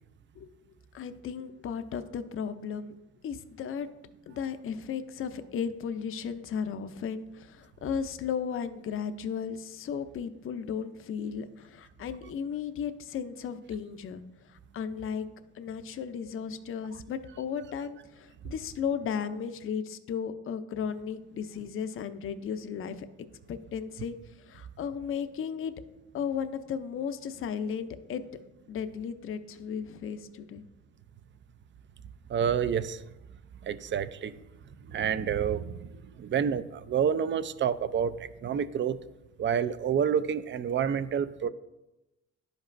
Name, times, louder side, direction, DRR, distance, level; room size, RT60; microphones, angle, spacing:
voice 1, 0.9-3.0 3.2-3.9 4.3-14.2 14.5-15.3 15.5-23.1 23.5-25.7 26.1-28.2 28.7-30.6, left 7 dB, 45° left, 10 dB, 0.5 m, -35 dB
voice 2, 32.3-33.0 33.6-34.4 34.9-39.0 39.4-41.5, right 8 dB, 40° right, 15 dB, 0.4 m, -29 dB
11.0 x 5.2 x 2.5 m, 0.97 s
cardioid pair, 90°, 30 cm